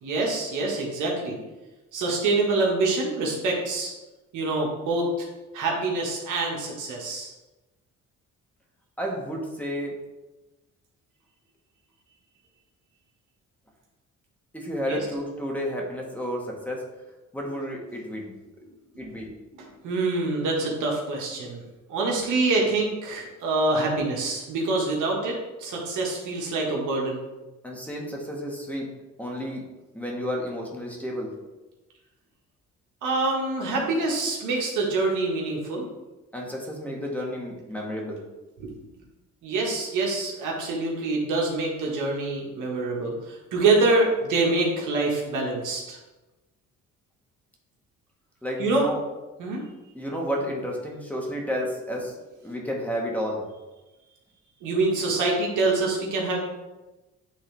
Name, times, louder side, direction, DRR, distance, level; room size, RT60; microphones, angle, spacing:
voice 1, 0.0-1.4 1.9-3.9 4.3-5.3 5.5-7.3 14.8-15.0 19.5-21.6 21.9-27.2 33.0-35.8 38.6-38.8 39.4-46.0 48.6-48.9 49.4-49.7 54.6-56.4, right 3 dB, 85° right, -2 dB, 1.7 m, -25 dB
voice 2, 9.0-9.9 14.5-16.8 17.3-18.3 19.0-19.3 27.6-28.9 29.2-29.6 29.9-31.3 36.3-38.2 48.4-49.0 49.9-52.1 52.4-53.4, equal, 5° left, -2 dB, 1.6 m, -31 dB
8.8 x 3.7 x 3.4 m, 1.1 s
cardioid pair, 90°, 30 cm